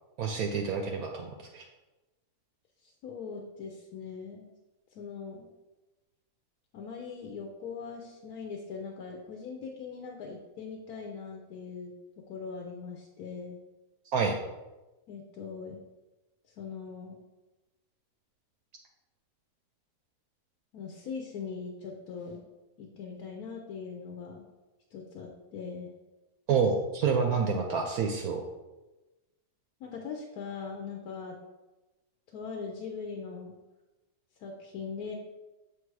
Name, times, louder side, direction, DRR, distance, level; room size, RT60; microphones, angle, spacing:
voice 1, 0.2-1.6 14.1-14.4 26.5-28.4, right 5 dB, 70° right, 2 dB, 1.0 m, -28 dB
voice 2, 2.8-4.5 4.9-5.5 6.7-11.9 12.3-13.6 15.1-15.8 16.6-17.2 20.7-22.4 22.8-24.5 24.9-25.9 29.8-31.4 32.3-33.5 34.4-35.2, left 5 dB, 75° left, 1 dB, 1.2 m, -41 dB
6.8 x 3.3 x 4.7 m, 1.1 s
omnidirectional pair, 1.6 m